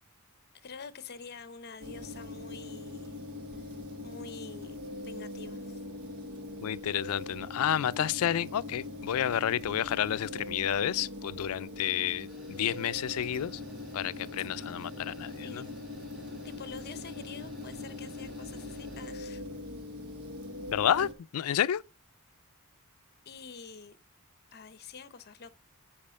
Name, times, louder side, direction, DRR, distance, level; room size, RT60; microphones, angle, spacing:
voice 1, 0.5-3.1 4.0-5.8 14.4-14.5 15.4-15.7 16.4-19.4 23.3-24.0 24.5-25.6, left 5 dB, 45° left, 0.7 m, -47 dB
sound 1, 1.8-21.1, left 2 dB, 80° right, 1.2 m, -42 dB
voice 2, 6.6-13.6 13.9-15.6 20.7-21.8, left 10 dB, 70° left, 0.4 m, -30 dB
sound 2, 12.3-19.1, right 1 dB, ahead, 2.9 m, -54 dB
8.8 x 4.8 x 5.1 m
head